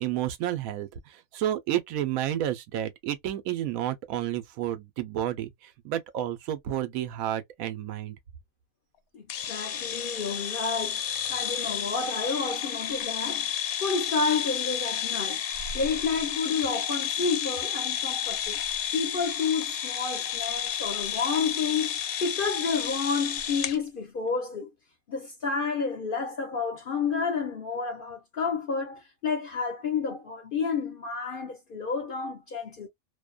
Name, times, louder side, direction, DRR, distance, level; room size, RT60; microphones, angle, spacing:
voice 1, 0.0-8.2, right 12 dB, 90° right, 1.0 m, -31 dB
voice 2, 9.1-13.5 13.8-15.4 15.7-18.6 18.9-24.7 25.1-32.9, left 5 dB, 55° left, 0.6 m, -30 dB
sound 1, 9.3-23.8, left 9 dB, 85° left, 1.0 m, -31 dB
2.7 x 2.1 x 2.3 m
omnidirectional pair, 1.5 m